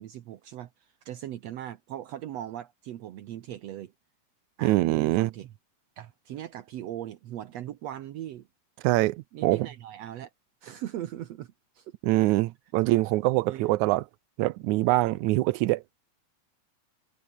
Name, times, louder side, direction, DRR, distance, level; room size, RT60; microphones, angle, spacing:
voice 1, 0.0-3.9 4.6-5.5 6.0-8.5 9.3-10.3 10.6-11.9 13.5-13.7, right 12 dB, 70° right, 2.1 m, -39 dB
voice 2, 4.6-5.3 8.8-9.7 12.0-14.0 14.4-15.8, right 18 dB, 85° right, 2.1 m, -24 dB
omnidirectional pair, 3.3 m